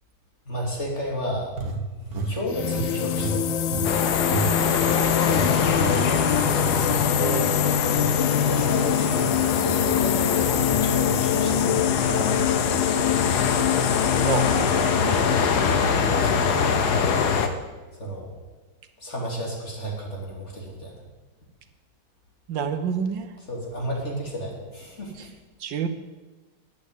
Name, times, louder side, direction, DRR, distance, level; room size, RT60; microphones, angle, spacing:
voice 1, 0.4-1.5 2.1-3.7 7.8-12.9 14.7-17.3 17.9-18.3 19.0-21.0 23.4-25.3, equal, 35° left, -2 dB, 3.2 m, -33 dB
sound 1, 1.5-4.5 4.7-5.0 5.3-5.5 5.7-6.0 6.3-7.0, right 3 dB, 50° right, 1.7 m, -30 dB
sound 2, 2.5-15.9, left 10 dB, 75° left, 1.3 m, -25 dB
sound 3, 3.8-17.5, left 6 dB, 60° left, 1.4 m, -24 dB
voice 2, 7.2-7.7 14.2-14.9 22.5-23.3 25.6-25.9, right 7 dB, 70° right, 8 dB, 1.5 m, -28 dB
11.5 x 8.5 x 8.3 m, 1.2 s
omnidirectional pair, 2.1 m